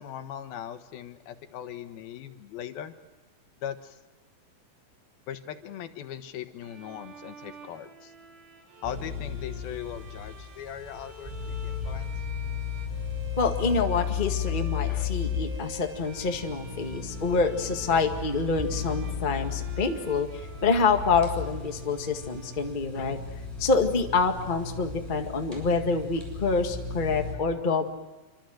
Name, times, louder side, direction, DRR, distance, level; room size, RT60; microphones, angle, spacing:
voice 1, 0.0-2.9 3.6-4.0 5.3-8.1 8.8-12.1, left 10 dB, 85° left, 8 dB, 3.2 m, -39 dB
Bowed string instrument, 6.6-23.1, right 2 dB, 80° right, 5.0 m, -48 dB
sound 1, 8.8-27.3, left 7 dB, 10° right, 6.9 m, -35 dB
voice 2, 13.4-20.3 20.6-23.2 23.6-27.8, left 4 dB, 25° left, 3 dB, 1.1 m, -26 dB
27.0 x 25.5 x 7.8 m, 1.2 s
omnidirectional pair, 4.2 m